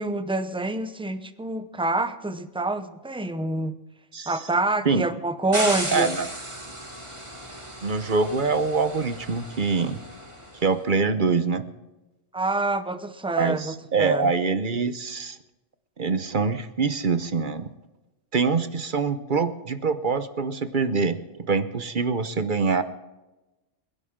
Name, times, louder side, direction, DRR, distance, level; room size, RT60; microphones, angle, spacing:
voice 1, 0.0-3.7 4.3-6.1 12.3-13.7 14.0-14.3, right 2 dB, 5° right, 10 dB, 0.5 m, -26 dB
sound 1, 5.5-10.7, right 1 dB, 25° right, 2.2 m, -35 dB
voice 2, 5.9-6.3 7.8-10.0 10.5-11.6 13.4-15.4 16.0-17.7 18.3-21.2 21.5-22.8, right 4 dB, 45° right, 10 dB, 1.0 m, -24 dB
28.0 x 11.0 x 3.7 m, 1.0 s
omnidirectional pair, 1.4 m